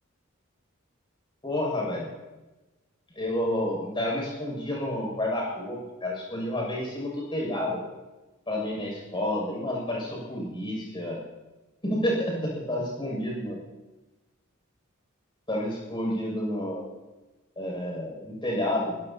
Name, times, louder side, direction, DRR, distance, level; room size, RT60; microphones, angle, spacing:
voice 1, 1.4-2.1 3.1-7.9 8.5-11.2 11.8-13.6 15.5-16.9 17.6-19.0, left 1 dB, 25° left, -2 dB, 6.8 m, -30 dB
25.5 x 17.5 x 2.9 m, 1.1 s
head